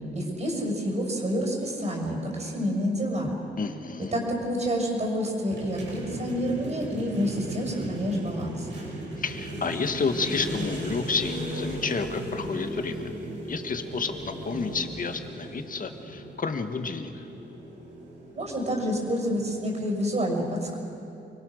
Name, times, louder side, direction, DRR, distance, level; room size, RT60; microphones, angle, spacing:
voice 1, 0.1-3.3 4.1-8.7 18.3-20.8, equal, 40° right, -1 dB, 6.4 m, -28 dB
voice 2, 3.6-4.1 9.2-13.1 13.5-17.2, left 4 dB, 50° left, 7 dB, 1.6 m, -30 dB
sound 1, 5.5-19.8, right 1 dB, 85° right, 7.6 m, -37 dB
28.5 x 23.0 x 6.5 m, 2.8 s
wide cardioid pair, 130°, 18 cm